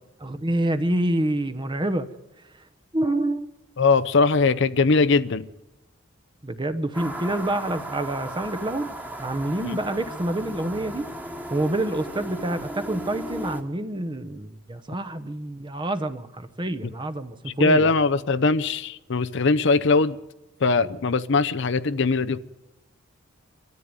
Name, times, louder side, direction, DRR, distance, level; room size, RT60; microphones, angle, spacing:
voice 1, 0.2-2.1 2.9-3.5 6.4-11.1 11.5-17.9, right 1 dB, 25° right, 11 dB, 0.9 m, -27 dB
voice 2, 3.8-5.4 9.6-9.8 17.6-20.2 20.6-22.4, left 3 dB, 60° left, 12 dB, 0.7 m, -21 dB
sound 1, 6.9-13.6, right 1 dB, 10° right, 1.5 m, -36 dB
24.0 x 13.5 x 9.7 m, 1.0 s
head